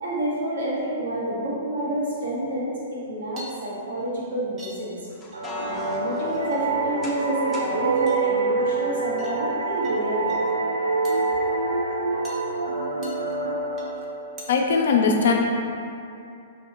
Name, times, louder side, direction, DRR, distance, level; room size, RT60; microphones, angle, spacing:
voice 1, 0.0-5.0 5.6-10.4, right 1 dB, 70° right, -7 dB, 1.1 m, -28 dB
sound 1, 3.3-4.1 4.6-4.8 5.1-5.8 6.1-6.6 6.8-7.5 8.0-8.7 9.2-9.9 10.2-10.4 11.0-11.4 12.2-12.5 13.0-13.4 13.8-14.0 14.4-14.5, right 1 dB, 25° right, 0.6 m, -45 dB
sound 2, 5.1-7.8, left 1 dB, 15° left, 0.5 m, -38 dB
sound 3, 5.3-14.7, right 3 dB, 90° right, 0.4 m, -26 dB
voice 2, 14.5-15.3, left 5 dB, 65° left, 1 dB, 0.5 m, -19 dB
2.9 x 2.8 x 3.9 m, 2.6 s
hypercardioid pair, 115°, 0 cm